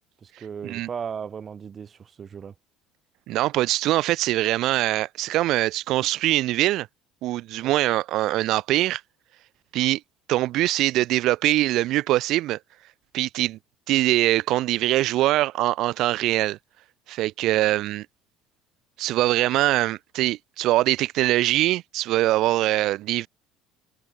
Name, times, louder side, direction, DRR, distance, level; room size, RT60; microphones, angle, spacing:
voice 1, 0.2-2.5 7.6-7.8, right 7 dB, 35° right, 5.8 m, -36 dB
voice 2, 3.3-6.9 7.2-9.0 9.7-10.0 10.3-12.6 13.1-13.6 13.9-16.6 17.1-18.1 19.0-23.3, right 16 dB, 55° right, 1.0 m, -23 dB
figure-of-eight pair, 60°, 0 cm